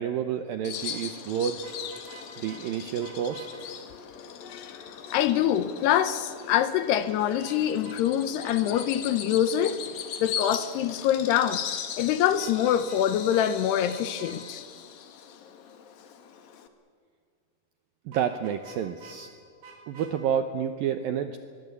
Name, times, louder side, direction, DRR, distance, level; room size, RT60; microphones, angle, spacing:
voice 1, 0.0-1.7 2.4-3.6 18.1-19.3 19.9-21.4, right 8 dB, 80° right, 2.1 m, -29 dB
Bird vocalization bird call bird song, 0.6-16.7, left 8 dB, 60° left, 2.9 m, -39 dB
Vehicle horn car horn honking, 1.6-2.6 3.0-3.5 7.0-7.6 7.8-8.0 8.4-8.9 12.3-13.1 13.3-13.5 13.9-14.4 18.1-19.2 19.6-20.1, right 5 dB, 60° right, 6.1 m, -48 dB
voice 2, 4.4-4.8 5.1-9.8 10.2-11.6 12.0-14.6, left 10 dB, 80° left, 2.6 m, -25 dB
23.5 x 22.5 x 8.3 m
omnidirectional pair, 5.3 m